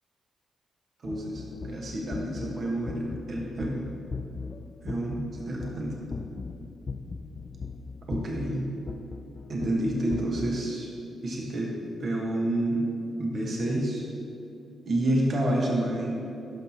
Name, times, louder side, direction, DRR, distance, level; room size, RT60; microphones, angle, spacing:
sound 1, 1.0-10.5, left 4 dB, 45° left, 0.4 m, -39 dB
voice 1, 1.0-3.9 4.8-6.0 8.1-8.7 9.5-10.9 11.2-12.9 13.2-14.1 14.8-16.1, right 1 dB, 55° right, -2 dB, 1.2 m, -29 dB
11.5 x 5.9 x 2.8 m, 2.7 s
cardioid pair, 60°, 0 cm